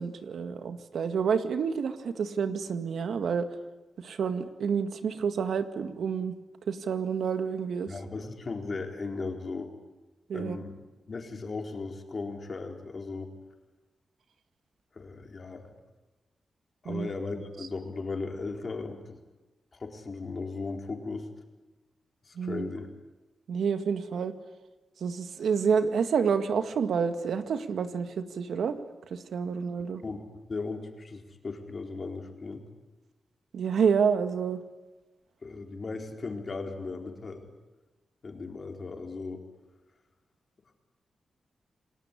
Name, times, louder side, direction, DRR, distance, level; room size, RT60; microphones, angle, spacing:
voice 1, 0.0-3.5 4.0-6.3 6.7-7.9 10.3-10.6 16.9-17.1 22.4-22.7 23.5-24.3 25.0-28.8 29.1-30.0 33.5-34.6, right 6 dB, 80° right, 8 dB, 1.9 m, -29 dB
voice 2, 7.9-9.7 10.3-10.8 11.1-13.3 14.9-15.7 16.8-19.2 19.7-21.3 22.2-22.9 30.0-30.2 30.5-32.6 35.4-37.5 38.2-39.4, left 3 dB, 40° left, 3 dB, 4.2 m, -37 dB
29.0 x 20.0 x 9.9 m, 1.1 s
wide cardioid pair, 115°, 0 cm